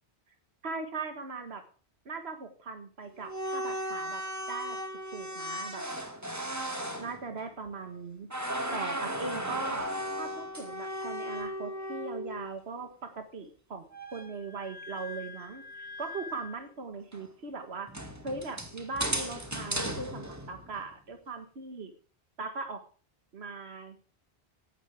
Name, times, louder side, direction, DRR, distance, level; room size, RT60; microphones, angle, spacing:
voice 1, 0.6-1.6 2.1-4.2 4.5-4.8 5.1-5.8 7.0-9.9 10.2-17.9 18.2-21.9 22.4-22.8 23.3-24.0, right 4 dB, 75° right, 6 dB, 1.9 m, -39 dB
sound 1, 3.2-8.0 8.3-12.6 13.9-16.6 17.1-17.2 17.9-20.9, equal, 15° right, 2.0 m, -36 dB
16.5 x 12.0 x 3.5 m, 0.39 s
omnidirectional pair, 1.1 m